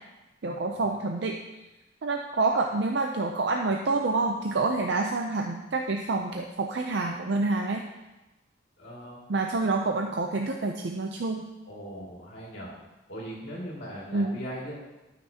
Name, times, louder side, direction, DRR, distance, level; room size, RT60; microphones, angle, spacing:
voice 1, 0.4-1.4 2.0-7.8 9.3-11.5 14.1-14.4, right 3 dB, 60° right, 2 dB, 0.5 m, -27 dB
voice 2, 8.8-9.2 11.7-12.7 13.1-14.7, equal, 65° left, -4 dB, 2.4 m, -39 dB
13.0 x 5.9 x 2.8 m, 1.0 s
head